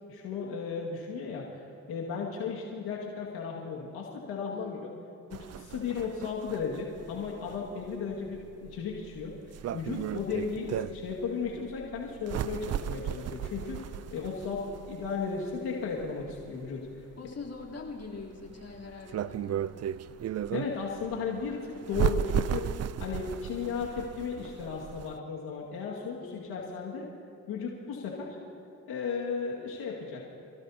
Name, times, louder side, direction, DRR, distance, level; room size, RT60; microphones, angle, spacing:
voice 1, 0.1-4.9 5.3-9.3 9.7-13.8 14.1-14.6 14.9-17.1 20.5-22.7 23.0-27.0 27.5-28.4 28.9-30.2, left 5 dB, 85° left, -3 dB, 2.1 m, -35 dB
voice 2, 4.5-4.9 14.4-14.9 17.2-19.9 26.2-26.7, left 4 dB, 45° left, -3 dB, 3.4 m, -44 dB
sound 1, 5.3-25.2, right 10 dB, 45° right, 0.5 m, -36 dB
28.0 x 17.0 x 2.8 m, 2.5 s
cardioid pair, 75°, 36 cm